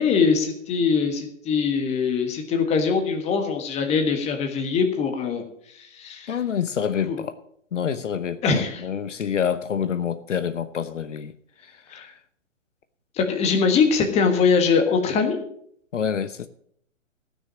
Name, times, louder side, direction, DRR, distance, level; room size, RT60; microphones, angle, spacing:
voice 1, 0.0-5.4 5.7-6.3 7.1-7.2 8.4-8.8 11.9-12.1 13.1-15.4, left 5 dB, 15° left, 1.5 m, -22 dB
voice 2, 6.3-7.3 7.7-11.3 11.6-12.2 15.9-16.5, left 8 dB, 70° left, 0.9 m, -27 dB
14.5 x 6.4 x 7.3 m
figure-of-eight pair, 130°, 39 cm